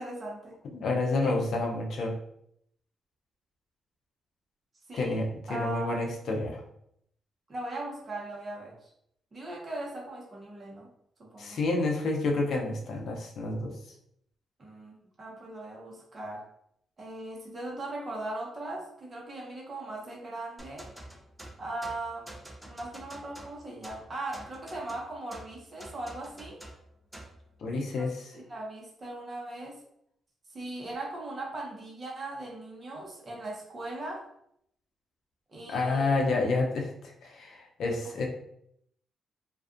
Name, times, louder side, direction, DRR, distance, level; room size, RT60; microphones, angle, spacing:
voice 1, 0.0-0.6 1.2-1.3 4.9-5.2 5.5-6.2 7.5-8.9 9.3-10.9 11.2-11.6 14.6-16.4 17.0-20.9 21.6-22.4 22.7-26.6 27.9-29.8 30.5-34.2 35.5-36.2 38.0-38.1, right 2 dB, 40° right, -2 dB, 0.9 m, -39 dB
voice 2, 0.7-2.1 4.9-6.6 11.4-13.7 27.6-28.2 35.7-38.3, left 3 dB, 70° left, 1 dB, 0.5 m, -29 dB
sound 1, 20.6-27.4, right 1 dB, 5° right, 0.5 m, -48 dB
2.5 x 2.3 x 2.5 m, 0.73 s
cardioid pair, 70°, 0 cm